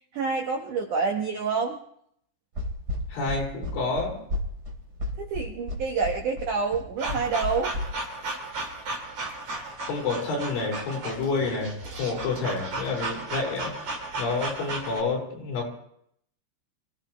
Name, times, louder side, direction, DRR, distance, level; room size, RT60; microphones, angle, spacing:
voice 1, 0.1-1.8 5.2-7.7, right 5 dB, 70° right, 1 dB, 1.9 m, -27 dB
sound 1, 2.6-7.8, left 2 dB, 25° right, 2.9 m, -32 dB
voice 2, 3.1-4.2 9.9-13.7 14.2-15.7, left 3 dB, 70° left, -2 dB, 7.0 m, -29 dB
sound 2, 7.0-15.0, right 2 dB, 40° right, 4.1 m, -35 dB
27.5 x 16.5 x 3.1 m, 0.69 s
omnidirectional pair, 5.6 m